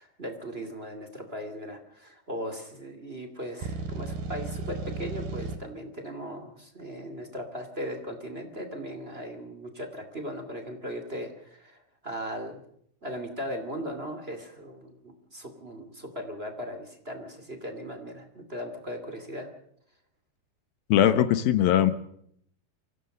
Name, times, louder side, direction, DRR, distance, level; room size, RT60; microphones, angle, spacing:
voice 1, 0.0-12.6 13.0-19.5, equal, 20° right, 5 dB, 2.1 m, -38 dB
sound 1, 3.6-5.6, right 3 dB, 70° right, 4.6 m, -34 dB
voice 2, 20.9-21.9, left 11 dB, 75° left, 13 dB, 2.8 m, -20 dB
24.5 x 16.5 x 6.6 m, 0.68 s
omnidirectional pair, 4.4 m